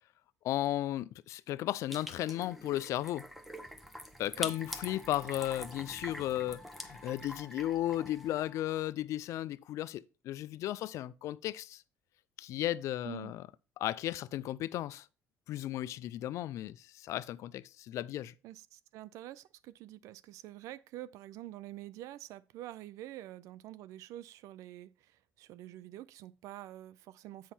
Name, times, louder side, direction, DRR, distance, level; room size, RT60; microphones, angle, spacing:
voice 1, 0.4-3.2 4.2-11.8 12.4-13.4 13.8-15.1 15.5-18.3, left 13 dB, 70° left, 0.4 m, -35 dB
sound 1, 1.9-8.5, equal, ahead, 1.1 m, -45 dB
Wind instrument woodwind instrument, 4.5-8.9, left 3 dB, 25° left, 0.7 m, -57 dB
voice 2, 13.0-13.4 18.4-27.5, right 14 dB, 75° right, 0.4 m, -47 dB
7.4 x 5.5 x 4.3 m
supercardioid pair, 75°, 5 cm